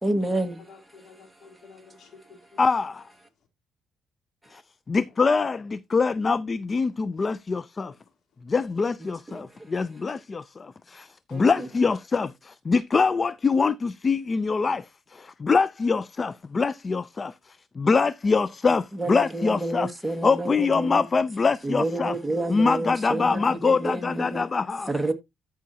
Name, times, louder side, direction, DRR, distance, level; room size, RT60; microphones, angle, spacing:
voice 1, 0.0-0.6 4.5-4.6 9.0-9.7 11.3-11.7 18.9-21.1 21.6-24.5 24.9-25.1, right 2 dB, 5° right, 1.8 m, -29 dB
voice 2, 0.7-2.6 11.3-11.4 16.2-16.3 22.3-22.5, left 4 dB, 65° left, 3.0 m, -51 dB
voice 3, 2.6-3.0 4.5-4.6 4.9-7.9 8.5-17.3 17.8-19.9 20.2-22.1 22.5-24.9, left 4 dB, 35° left, 0.5 m, -24 dB
13.5 x 5.7 x 2.8 m
cardioid pair, 90°, 0 cm